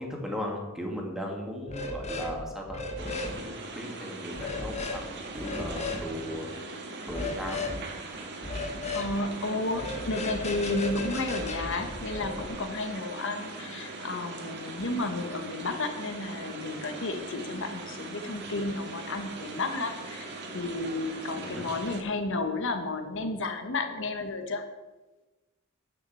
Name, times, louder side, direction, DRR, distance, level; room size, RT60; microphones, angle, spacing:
voice 1, 0.0-6.5 7.1-7.7 21.3-21.7, equal, ahead, 0 dB, 2.2 m, -37 dB
sound 1, 1.7-2.4 2.6-3.4 4.4-5.0 5.4-6.0 7.1-7.8 8.4-9.1 9.7-12.4, left 2 dB, 30° left, 1.3 m, -35 dB
sound 2, 3.0-22.0, right 3 dB, 55° right, 1.8 m, -41 dB
voice 2, 8.9-24.6, left 2 dB, 60° left, 6 dB, 1.4 m, -32 dB
9.9 x 6.5 x 7.7 m, 1.1 s
head